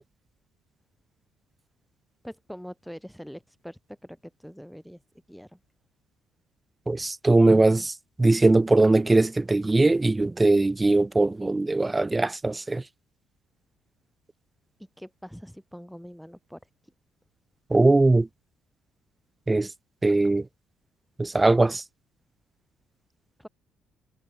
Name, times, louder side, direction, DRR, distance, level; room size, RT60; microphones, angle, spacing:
voice 1, 2.2-5.0 5.3-5.6 15.0-16.6 23.4-23.5, equal, ahead, 3.4 m, -43 dB
voice 2, 6.9-7.9 8.2-12.8 17.7-18.3 19.5-19.7 20.0-20.4 21.2-21.8, right 2 dB, 15° right, 0.3 m, -20 dB
supercardioid pair, 80°, 0 cm